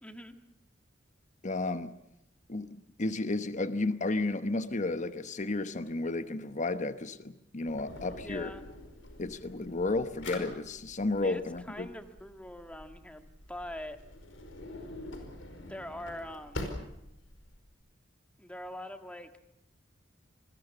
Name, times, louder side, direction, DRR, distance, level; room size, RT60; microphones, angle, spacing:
voice 1, 0.0-0.3 7.9-8.7 11.2-14.0 15.7-16.8 18.4-19.3, left 1 dB, 5° left, 1.7 m, -43 dB
voice 2, 1.4-1.9 2.5-8.5 9.2-11.9, left 2 dB, 40° left, 1.0 m, -32 dB
Drawer open or close, 7.7-17.6, left 1 dB, 85° left, 5.0 m, -45 dB
27.0 x 21.0 x 7.2 m
head